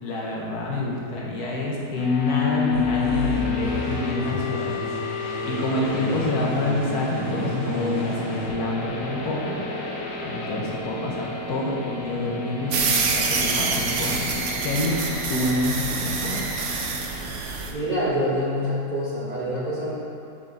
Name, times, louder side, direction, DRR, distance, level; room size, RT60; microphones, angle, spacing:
voice 1, 0.0-4.7 5.2-9.4 10.2-16.5, left 2 dB, 65° left, -3 dB, 1.4 m, -27 dB
sound 1, 2.0-17.7, left 4 dB, 85° left, 1.6 m, -31 dB
sound 2, 2.7-8.5, right 1 dB, 45° right, 1.9 m, -34 dB
sound 3, 12.7-17.7, right 4 dB, 60° right, 0.8 m, -26 dB
voice 2, 17.7-19.9, equal, 30° right, -9 dB, 1.0 m, -26 dB
7.1 x 6.1 x 3.8 m, 2.6 s
omnidirectional pair, 1.9 m